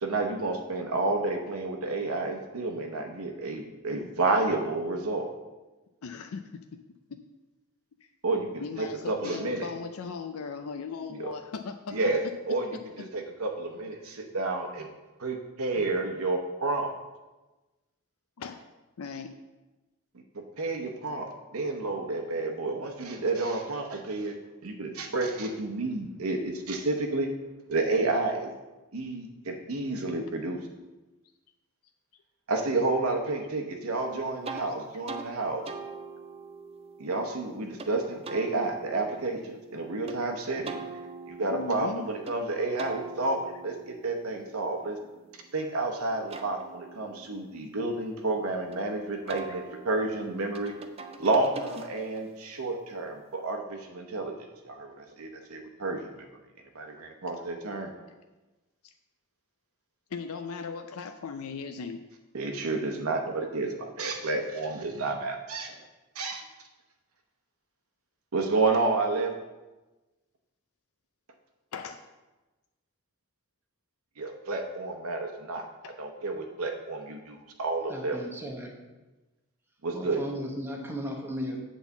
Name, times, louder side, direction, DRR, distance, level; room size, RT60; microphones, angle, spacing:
voice 1, 0.0-5.3 8.2-9.7 11.1-11.3 11.9-12.2 12.5-12.7 13.0-14.9 15.2-16.9 20.6-24.3 24.6-27.3 27.7-28.5 28.9-30.6 32.5-35.6 37.0-40.8 41.3-45.0 45.5-50.7 51.2-54.3 54.6-56.2 56.7-58.1 62.3-65.8 66.1-66.4 68.3-69.3 74.2-75.6 76.0-78.2 79.8-80.2, right 3 dB, 85° right, 3 dB, 0.9 m, -30 dB
voice 2, 6.0-6.6 7.1-7.2 8.6-12.0 18.4-18.6 19.0-19.3 41.5-42.0 60.1-62.0 71.7-72.0 75.8-75.9, left 5 dB, 85° left, 7 dB, 0.5 m, -37 dB
sound 1, 34.4-34.7 35.1-35.3 35.7-37.9 38.2-40.2 40.7-42.4 42.8-45.7 46.1-48.8 49.3-52.3, right 4 dB, 25° right, 0.5 m, -43 dB
voice 3, 77.9-78.8 79.9-81.6, equal, 10° right, 1 dB, 1.0 m, -36 dB
8.2 x 4.1 x 7.0 m, 1.1 s
head